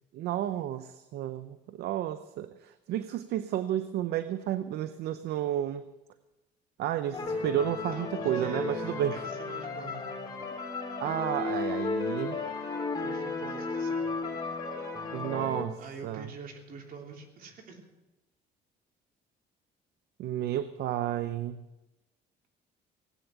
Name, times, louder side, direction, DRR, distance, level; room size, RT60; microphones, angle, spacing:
voice 1, 0.1-5.9 6.8-9.2 11.0-12.4 15.1-16.3 20.2-21.6, right 11 dB, 75° right, 13 dB, 0.7 m, -32 dB
sound 1, 7.1-15.6, left 3 dB, 25° left, 3.4 m, -34 dB
voice 2, 7.8-10.0 13.0-14.1 15.8-17.8, right 5 dB, 60° right, 3 dB, 3.2 m, -45 dB
18.5 x 8.9 x 8.1 m, 1.0 s
cardioid pair, 110°, 17 cm